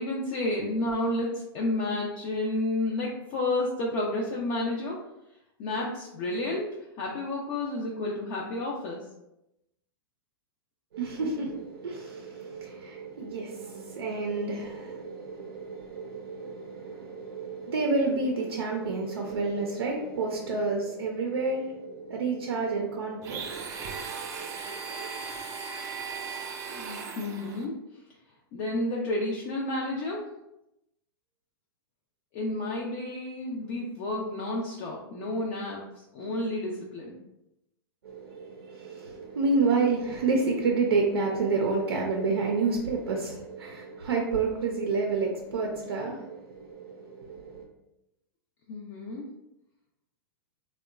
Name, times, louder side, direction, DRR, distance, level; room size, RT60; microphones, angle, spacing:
voice 1, 0.0-5.0 5.6-9.0 26.7-28.0 28.5-30.2 32.3-37.2 48.7-49.3, left 2 dB, 45° left, -3 dB, 0.4 m, -31 dB
voice 2, 10.9-25.2 38.0-47.7, right 3 dB, 90° right, 0 dB, 0.4 m, -30 dB
Domestic sounds home sounds, 23.2-27.7, right 5 dB, 25° right, 0.3 m, -37 dB
2.8 x 2.1 x 2.3 m, 0.88 s
hypercardioid pair, 120°, 12 cm